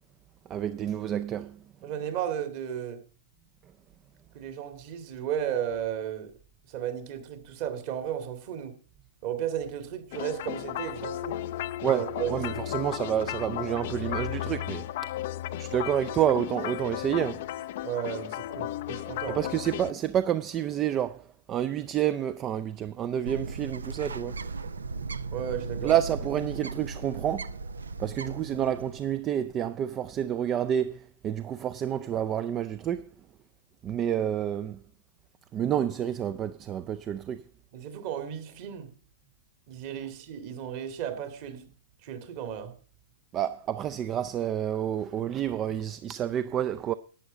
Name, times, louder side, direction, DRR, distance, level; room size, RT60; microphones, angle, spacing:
voice 1, 0.5-1.6 11.8-14.9 15.5-17.5 19.3-24.4 25.8-27.6 28.0-33.0 33.8-34.8 35.5-37.4 43.3-46.9, right 10 dB, 30° right, 0.5 m, -29 dB
voice 2, 1.8-3.0 4.3-6.3 6.7-8.8 9.2-11.4 11.8-12.7 13.2-13.3 17.8-19.4 25.3-25.9 37.7-38.9 39.7-41.7 42.0-42.7, right 9 dB, 45° right, 2.2 m, -34 dB
sound 1, 10.1-19.9, left 14 dB, 50° left, 0.4 m, -35 dB
Bird, 23.3-29.2, right 4 dB, 75° right, 0.6 m, -37 dB
11.5 x 8.9 x 5.2 m
figure-of-eight pair, 105°, 0 cm